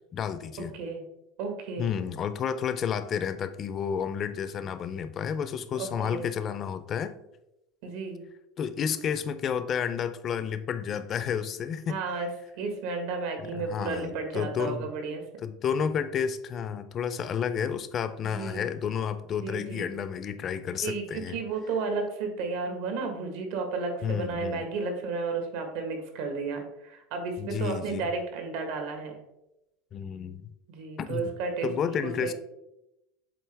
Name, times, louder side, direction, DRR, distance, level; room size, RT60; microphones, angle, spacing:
voice 1, 0.1-0.8 1.8-7.2 8.6-12.0 13.5-14.9 15.4-21.4 24.0-24.7 27.4-28.1 29.9-30.5 31.1-31.3 31.6-32.3, left 7 dB, 35° left, 11 dB, 0.5 m, -31 dB
voice 2, 1.4-1.9 5.7-6.3 7.8-8.2 11.9-12.3 12.6-15.2 18.3-18.7 19.4-20.0 20.7-29.2 30.7-32.3, right 4 dB, 70° right, 5 dB, 1.5 m, -33 dB
7.8 x 3.8 x 3.4 m, 0.89 s
supercardioid pair, 140°, 0 cm